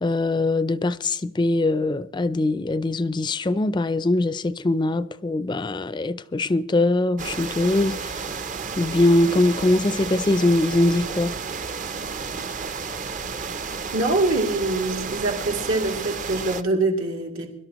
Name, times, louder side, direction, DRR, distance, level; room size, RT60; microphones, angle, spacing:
voice 1, 0.0-8.1 8.8-11.3, left 2 dB, 20° left, 0.4 m, -22 dB
sound 1, 7.2-16.6, right 5 dB, 40° right, 0.6 m, -32 dB
voice 2, 13.9-17.5, right 2 dB, 85° right, 2.6 m, -24 dB
23.5 x 11.5 x 3.0 m
head